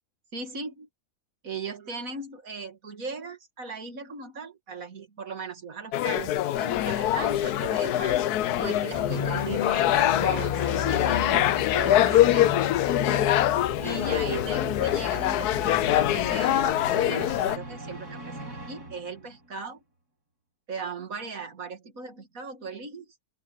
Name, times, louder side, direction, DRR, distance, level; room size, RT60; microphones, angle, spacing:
voice 1, 0.3-0.9 1.4-12.6 13.8-19.8 20.7-23.1, right 4 dB, 60° right, 2.7 m, -38 dB
sound 1, 5.9-17.6, left 13 dB, 90° left, 1.2 m, -24 dB
sound 2, 6.9-19.6, right 1 dB, 85° right, 7.4 m, -45 dB
sound 3, 8.9-16.3, left 6 dB, 40° left, 0.7 m, -33 dB
open air
omnidirectional pair, 1.6 m